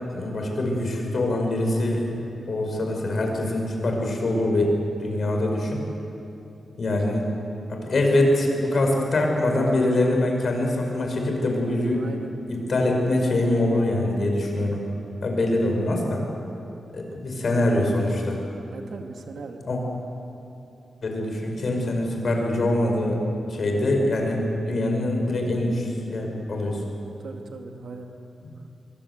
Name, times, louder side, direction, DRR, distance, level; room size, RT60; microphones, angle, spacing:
voice 1, 0.1-2.1 2.5-4.7 5.0-5.8 6.8-7.3 7.7-12.0 12.5-14.8 15.2-16.2 16.9-18.4 19.7-19.8 21.0-23.2 23.5-26.8, left 1 dB, 45° left, 1 dB, 5.3 m, -24 dB
voice 2, 11.9-12.3 18.7-19.7 27.2-28.1, right 4 dB, 65° right, 3 dB, 2.4 m, -39 dB
24.0 x 24.0 x 8.1 m, 2.8 s
wide cardioid pair, 160°, 0 cm